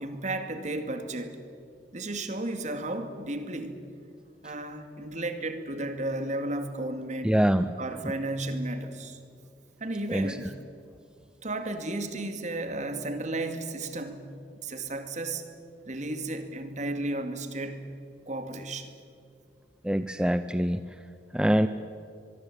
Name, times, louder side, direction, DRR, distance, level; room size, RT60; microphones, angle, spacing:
voice 1, 0.0-1.4 1.9-3.8 4.4-7.3 7.8-9.2 9.8-10.5 11.4-14.3 14.6-15.5 15.8-17.9 18.3-18.9, right 2 dB, 45° right, 7 dB, 2.4 m, -33 dB
voice 2, 7.2-7.7 10.1-10.4 19.8-20.8 21.3-21.7, equal, 5° right, 11 dB, 0.6 m, -24 dB
23.5 x 23.0 x 8.8 m, 2.3 s
head